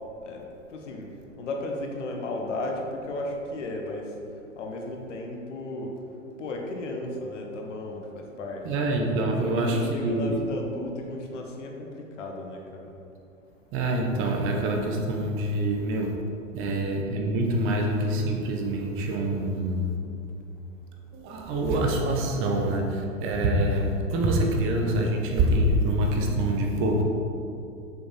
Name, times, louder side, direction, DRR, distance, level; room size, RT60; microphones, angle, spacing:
voice 1, 0.7-1.1 1.4-4.1 4.6-5.9 6.4-8.6 9.4-12.9, left 2 dB, 60° left, 1 dB, 1.7 m, -34 dB
voice 2, 8.6-10.4 13.7-16.2 16.5-20.0 21.1-27.0, right 1 dB, 30° right, 2 dB, 1.2 m, -25 dB
6.9 x 6.8 x 5.4 m, 2.7 s
hypercardioid pair, 110°, 40 cm